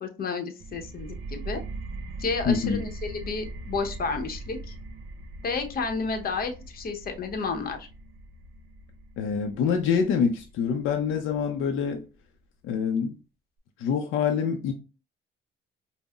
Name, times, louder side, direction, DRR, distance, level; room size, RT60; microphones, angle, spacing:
voice 1, 0.0-1.6 2.2-4.7 5.4-7.9, left 4 dB, 50° left, 0.8 m, -31 dB
sound 1, 0.6-12.0, right 2 dB, 80° right, 0.6 m, -41 dB
voice 2, 2.5-2.8 9.2-12.0 12.6-13.1 13.8-14.7, left 6 dB, 85° left, 0.5 m, -25 dB
5.3 x 2.0 x 2.3 m
cardioid pair, 90°, 20 cm